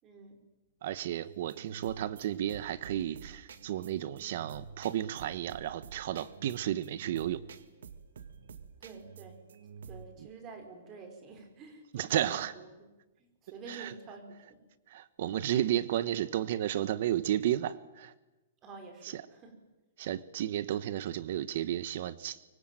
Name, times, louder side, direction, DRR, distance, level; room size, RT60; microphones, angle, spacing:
voice 1, 0.0-0.4 8.8-9.4 9.9-12.7 13.2-14.6 18.6-19.6, right 4 dB, 25° right, 5 dB, 5.1 m, -48 dB
voice 2, 0.8-7.4 11.9-12.5 13.7-13.9 14.9-18.1 19.0-19.2 20.0-22.4, right 12 dB, 55° right, 15 dB, 1.2 m, -33 dB
sound 1, 1.2-10.1, right 6 dB, 85° right, 2.1 m, -49 dB
24.5 x 23.5 x 9.2 m, 1.1 s
hypercardioid pair, 155°, 0 cm